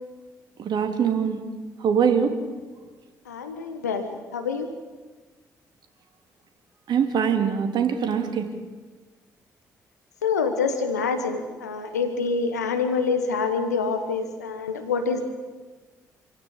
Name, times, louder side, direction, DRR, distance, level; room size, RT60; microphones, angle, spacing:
voice 1, 0.6-1.4 1.8-2.3 6.9-8.5, right 7 dB, 55° right, 6 dB, 2.8 m, -23 dB
voice 2, 3.3-4.7 10.2-15.2, left 5 dB, 85° left, 8 dB, 1.3 m, -26 dB
27.0 x 16.0 x 8.8 m, 1.3 s
figure-of-eight pair, 40°, 9 cm